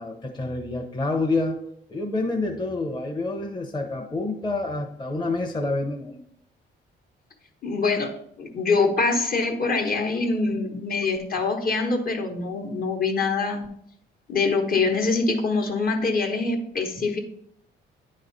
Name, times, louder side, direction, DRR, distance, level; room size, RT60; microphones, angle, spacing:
voice 1, 0.0-1.6 1.9-6.2, left 2 dB, 20° left, 1 dB, 0.9 m, -28 dB
voice 2, 7.6-8.1 8.4-13.7 14.3-17.2, left 3 dB, 45° left, 3 dB, 1.2 m, -24 dB
9.4 x 3.2 x 4.0 m, 0.71 s
cardioid pair, 90°, 20 cm